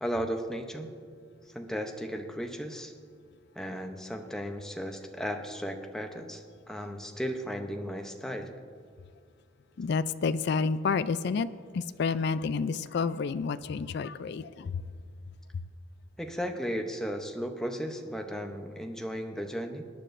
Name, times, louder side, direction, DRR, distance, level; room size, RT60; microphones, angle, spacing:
voice 1, 0.0-0.9 1.5-2.9 3.6-8.5 16.2-19.8, equal, 5° left, 3 dB, 0.7 m, -35 dB
voice 2, 9.8-11.5 11.7-14.7, left 5 dB, 55° left, 13 dB, 0.3 m, -29 dB
21.0 x 10.0 x 2.6 m, 2.1 s
head